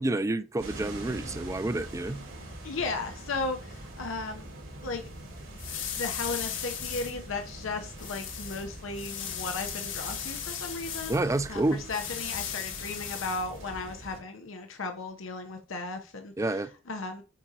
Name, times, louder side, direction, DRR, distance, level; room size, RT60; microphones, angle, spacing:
voice 1, 0.0-2.2 11.1-11.8 16.4-16.7, right 2 dB, 15° right, 0.4 m, -29 dB
sound 1, 0.6-14.2, right 1 dB, 90° right, 3.4 m, -44 dB
voice 2, 2.6-4.5 4.8-5.1 5.9-11.2 11.5-11.6 11.9-16.6 16.9-17.2, left 3 dB, 90° left, 0.9 m, -35 dB
sound 2, 4.8-14.0, left 8 dB, 75° left, 1.4 m, -38 dB
8.7 x 4.9 x 2.8 m
head